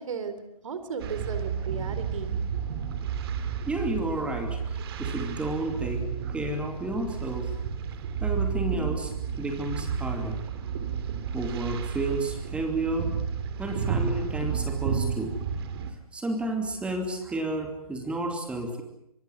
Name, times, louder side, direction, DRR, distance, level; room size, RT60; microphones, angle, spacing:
voice 1, 0.0-2.6, right 5 dB, 55° right, 11 dB, 3.9 m, -36 dB
sound 1, 1.0-15.9, right 7 dB, 40° right, 3.0 m, -31 dB
voice 2, 3.7-6.1 6.3-7.5 8.2-9.1 9.4-10.4 11.3-13.2 13.6-15.4 16.1-18.8, right 2 dB, 5° right, 4 dB, 2.7 m, -31 dB
25.0 x 19.5 x 8.0 m, 0.80 s
figure-of-eight pair, 145°, 20 cm